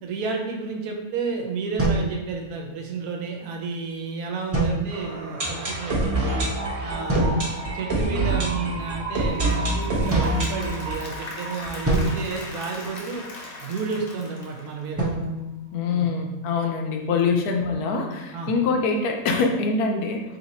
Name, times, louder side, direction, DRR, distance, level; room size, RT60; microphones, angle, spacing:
voice 1, 0.0-6.4 6.8-7.4 7.7-13.2 13.6-15.0 15.9-16.1 17.3-17.4 18.3-18.5, right 4 dB, 80° right, 1 dB, 1.2 m, -31 dB
sound 1, 1.8-2.9 4.5-5.3 7.1-7.7 10.1-11.2 11.8-13.3 15.0-16.5, right 2 dB, 20° right, 0.4 m, -28 dB
sound 2, 4.9-12.7 12.9-13.0 13.2-13.3 13.9-14.0, right 2 dB, 40° right, 1.1 m, -27 dB
Applause / Crowd, 9.2-15.2, left 2 dB, 50° left, 0.8 m, -40 dB
voice 2, 15.7-20.2, left 4 dB, 85° left, 2 dB, 1.1 m, -24 dB
3.2 x 2.8 x 4.1 m, 1.1 s
omnidirectional pair, 1.6 m